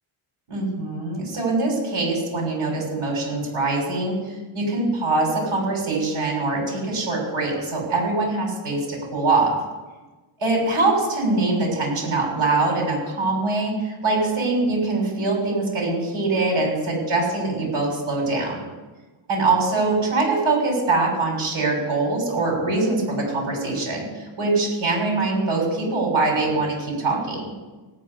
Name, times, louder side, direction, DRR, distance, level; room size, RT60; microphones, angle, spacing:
voice 1, 0.5-9.6 10.4-18.6 19.3-27.5, right 3 dB, 70° right, 0 dB, 6.6 m, -23 dB
18.5 x 6.3 x 9.8 m, 1.2 s
wide cardioid pair, 160°, 49 cm